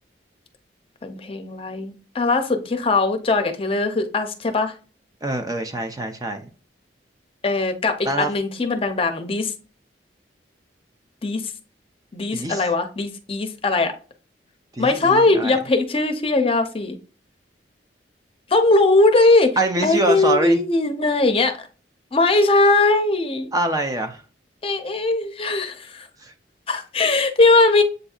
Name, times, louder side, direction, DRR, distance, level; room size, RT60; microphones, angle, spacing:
voice 1, 1.0-4.7 7.4-9.5 11.2-11.4 12.1-13.9 14.8-17.0 18.5-19.5 19.8-21.5 22.1-23.5 24.6-26.1 26.7-27.8, left 2 dB, 30° left, 0.6 m, -20 dB
voice 2, 5.2-6.4 8.0-8.3 12.3-12.6 14.7-15.6 19.6-20.6 23.5-24.2 26.2-26.3, right 2 dB, 20° right, 0.5 m, -24 dB
7.8 x 2.6 x 2.3 m
head